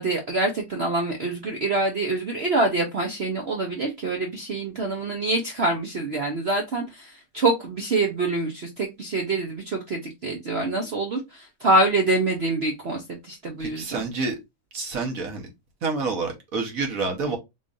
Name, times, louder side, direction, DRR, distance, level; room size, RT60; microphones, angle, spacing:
voice 1, 0.0-14.0, right 2 dB, 80° right, 0.5 m, -25 dB
voice 2, 13.6-14.4 14.7-15.5 15.8-17.4, right 4 dB, 50° right, 1.3 m, -28 dB
3.9 x 3.2 x 2.5 m
omnidirectional pair, 2.2 m